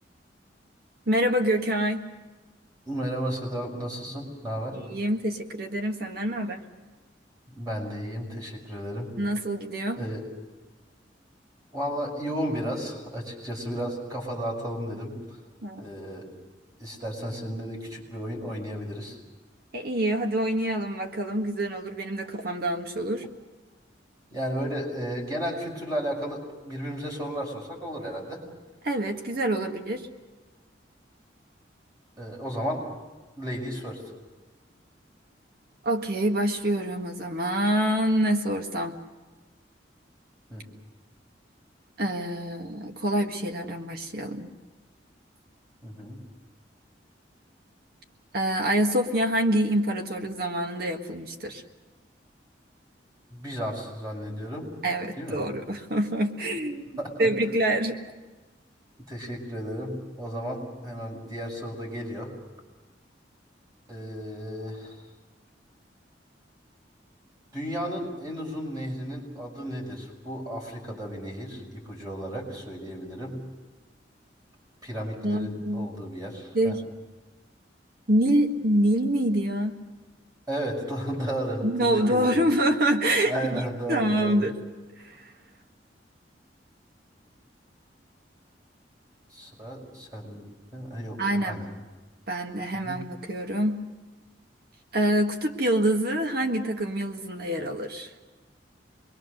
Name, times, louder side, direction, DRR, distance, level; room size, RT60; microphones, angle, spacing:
voice 1, 1.1-2.0 4.7-6.6 9.2-10.0 15.6-15.8 19.7-23.3 28.8-30.1 35.8-39.0 42.0-44.5 48.3-51.6 54.8-56.9 57.2-57.9 75.2-75.9 76.5-76.8 78.1-79.8 81.6-84.6 85.0-85.3 91.2-91.6 92.3-93.8 94.9-98.1, right 1 dB, 60° right, 4 dB, 1.7 m, -26 dB
voice 2, 2.9-4.8 7.5-9.2 9.9-10.3 11.7-15.4 15.8-16.3 16.8-19.2 24.3-28.5 32.2-32.9 33.4-34.0 40.5-40.6 45.8-46.2 53.3-54.7 55.2-55.4 57.0-57.3 59.1-62.3 63.9-65.0 67.5-73.4 74.8-76.7 80.5-82.4 83.3-84.4 89.3-91.7 92.8-93.0, equal, 20° right, 0 dB, 6.0 m, -33 dB
26.0 x 22.0 x 6.6 m, 1.2 s
head